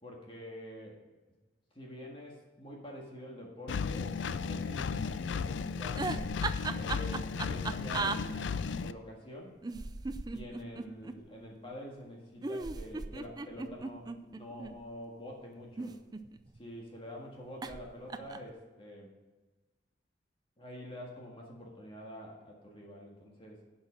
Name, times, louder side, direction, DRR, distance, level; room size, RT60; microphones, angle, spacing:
voice 1, 0.0-1.0 1.7-6.2 6.8-9.5 10.3-16.0 16.5-19.1 20.6-23.6, equal, 30° left, -2 dB, 1.7 m, -47 dB
Engine, 3.7-8.9, left 5 dB, 80° left, 0.4 m, -35 dB
sound 1, 6.0-8.2 9.6-11.2 12.4-14.7 15.6-16.6 17.6-17.8 18.1-18.5, right 3 dB, 20° right, 0.4 m, -37 dB
10.5 x 5.6 x 6.1 m, 1.2 s
head